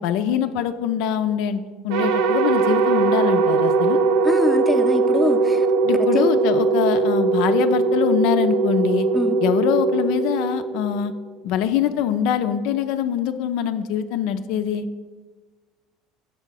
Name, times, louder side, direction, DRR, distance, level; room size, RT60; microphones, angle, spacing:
voice 1, 0.0-4.0 5.8-9.1 9.4-11.1 11.4-14.9, left 9 dB, 70° left, 9 dB, 0.3 m, -23 dB
sound 1, 1.9-11.2, right 4 dB, 75° right, 0.5 m, -20 dB
voice 2, 4.2-5.7 6.1-6.3 9.1-9.4, left 2 dB, 5° left, 4 dB, 0.5 m, -23 dB
6.7 x 3.5 x 5.7 m, 1.3 s
supercardioid pair, 115°, 0 cm